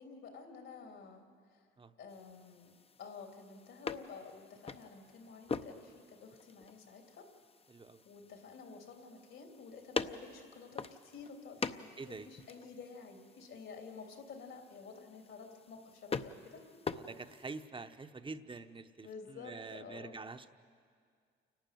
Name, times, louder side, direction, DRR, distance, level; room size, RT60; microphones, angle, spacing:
voice 1, 0.0-1.7 2.0-7.3 8.0-16.6 19.0-20.1, left 5 dB, 75° left, 3 dB, 3.2 m, -51 dB
sound 1, 2.1-17.7, left 5 dB, 30° left, 0.7 m, -45 dB
voice 2, 7.7-8.0 12.0-12.3 16.9-20.5, right 4 dB, 25° right, 9 dB, 0.9 m, -46 dB
28.5 x 12.0 x 9.2 m, 2.1 s
cardioid pair, 90°, 20 cm